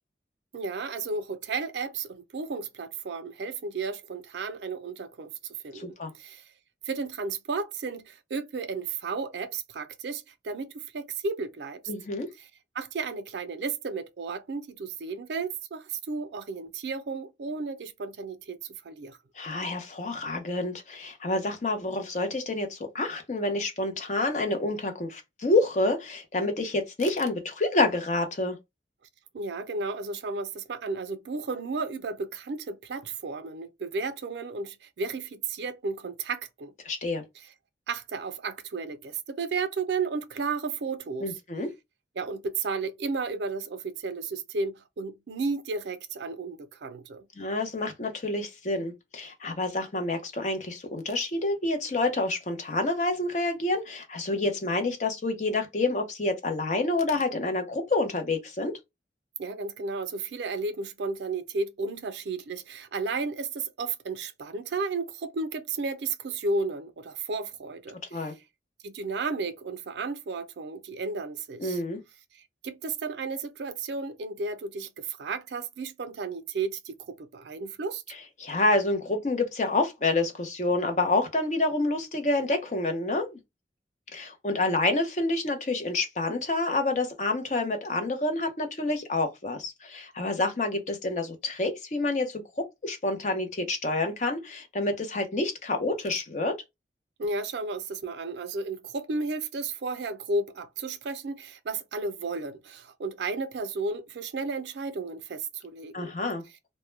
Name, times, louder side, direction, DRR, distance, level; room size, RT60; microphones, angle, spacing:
voice 1, 0.5-5.3 5.6-6.4 6.9-11.8 12.4-12.5 12.7-19.2 29.3-36.7 37.9-41.3 42.2-47.3 59.4-68.3 68.8-71.8 72.3-78.0 97.2-106.1, right 4 dB, 85° right, 0.4 m, -33 dB
voice 2, 5.7-6.1 11.9-12.3 19.4-28.6 36.8-37.2 41.2-41.7 47.4-58.8 68.1-68.3 71.6-72.0 78.4-83.4 84.1-96.6 105.9-106.4, left 2 dB, 45° left, 0.6 m, -28 dB
2.1 x 2.1 x 3.1 m
head